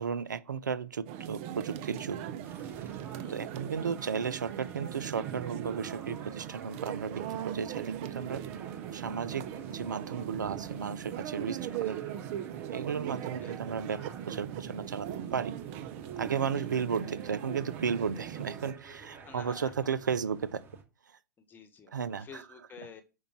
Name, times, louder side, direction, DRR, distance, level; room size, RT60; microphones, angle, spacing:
voice 1, 0.0-2.2 3.3-8.4 8.9-12.0 12.7-15.5 16.2-20.6 21.9-22.4, right 6 dB, 80° right, 0.7 m, -34 dB
sound 1, 1.1-18.7, right 10 dB, 45° right, 0.9 m, -39 dB
sound 2, 2.4-20.8, right 4 dB, 25° right, 2.5 m, -51 dB
voice 2, 13.2-13.6 16.4-16.9 19.2-20.0 21.4-23.0, left 5 dB, 20° left, 1.4 m, -51 dB
6.5 x 5.1 x 5.8 m
hypercardioid pair, 115°, 10 cm